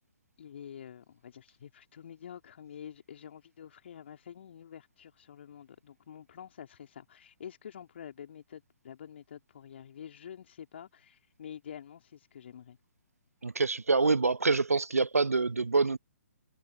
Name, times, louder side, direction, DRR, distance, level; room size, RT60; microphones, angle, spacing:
voice 1, 0.4-12.8, left 8 dB, 50° left, 3.6 m, -48 dB
voice 2, 13.4-16.0, right 4 dB, 75° right, 1.1 m, -26 dB
figure-of-eight pair, 130°, 8 cm